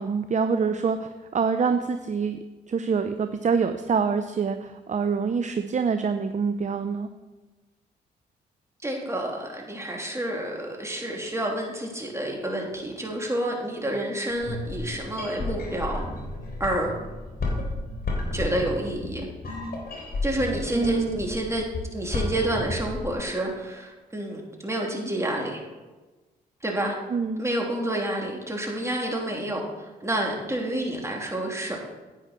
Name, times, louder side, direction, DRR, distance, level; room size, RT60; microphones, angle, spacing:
voice 1, 0.0-2.4 2.7-7.1 20.7-21.2 27.1-27.4, right 5 dB, 35° right, 9 dB, 0.7 m, -25 dB
voice 2, 8.8-16.0 16.6-16.9 18.3-19.3 20.2-21.6 21.9-25.6 26.6-26.9 27.4-31.8, right 1 dB, 15° right, -1 dB, 3.3 m, -29 dB
sound 1, 14.3-23.1, left 2 dB, 50° left, 3.4 m, -32 dB
9.9 x 9.2 x 4.5 m, 1.2 s
hypercardioid pair, 45°, 21 cm